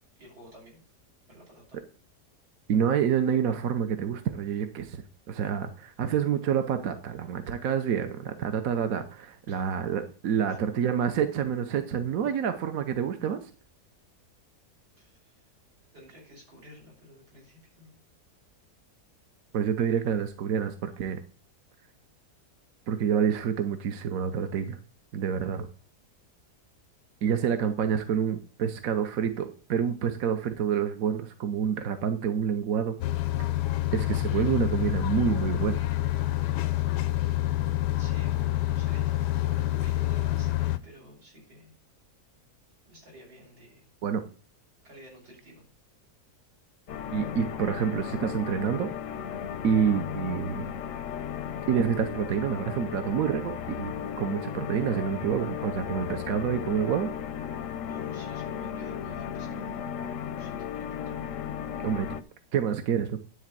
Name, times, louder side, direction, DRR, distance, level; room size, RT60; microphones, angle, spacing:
voice 1, 0.2-0.8 1.3-1.8 9.5-9.9 10.5-10.6 15.0-15.4 15.9-17.9 38.0-41.7 42.9-43.9 44.8-45.7 57.8-60.0 60.4-61.2, equal, 80° right, -4 dB, 6.6 m, -51 dB
voice 2, 2.7-5.0 5.3-13.4 19.5-21.2 22.9-24.8 25.1-25.7 27.2-33.0 33.9-35.8 44.0-44.2 47.1-48.9 49.6-50.7 51.7-57.1 61.8-62.2 62.5-63.2, right 8 dB, 60° right, 8 dB, 1.2 m, -28 dB
sound 1, 33.0-40.8, left 15 dB, 90° left, 1.2 m, -27 dB
sound 2, 46.9-62.2, left 8 dB, 65° left, 0.8 m, -35 dB
11.0 x 3.9 x 7.5 m, 0.38 s
omnidirectional pair, 1.7 m